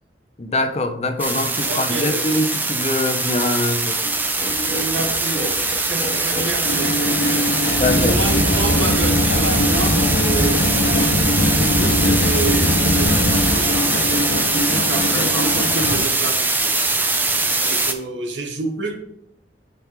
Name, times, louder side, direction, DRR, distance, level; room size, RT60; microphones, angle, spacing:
voice 1, 0.4-4.0 7.8-8.2, left 1 dB, 35° left, 7 dB, 0.6 m, -23 dB
sound 1, 1.2-17.9, right 3 dB, 10° right, 0.5 m, -22 dB
voice 2, 1.6-2.3 4.0-16.7 17.5-19.0, right 3 dB, 85° right, 2 dB, 1.3 m, -29 dB
sound 2, 4.0-10.3, equal, 20° left, 1.2 m, -36 dB
sound 3, 6.6-16.0, left 1 dB, 80° left, 1.0 m, -21 dB
5.2 x 4.6 x 5.6 m, 0.77 s
head